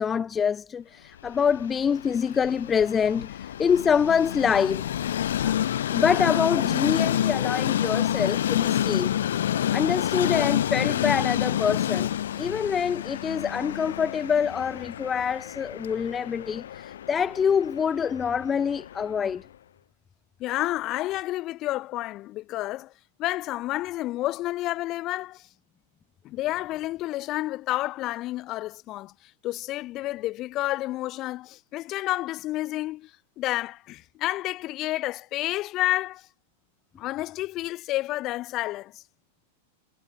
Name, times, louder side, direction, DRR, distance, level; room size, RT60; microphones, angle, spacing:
voice 1, 0.0-4.9 5.4-5.5 5.9-9.1 9.7-12.1 12.3-19.4, left 7 dB, 15° left, 1.3 m, -25 dB
Train, 1.2-19.3, left 10 dB, 85° left, 4.3 m, -28 dB
voice 2, 20.4-22.9 23.2-25.4 26.2-29.1 29.4-33.1 33.4-36.3 37.0-39.0, left 16 dB, 30° left, 4.0 m, -30 dB
supercardioid pair, 155°, 0 cm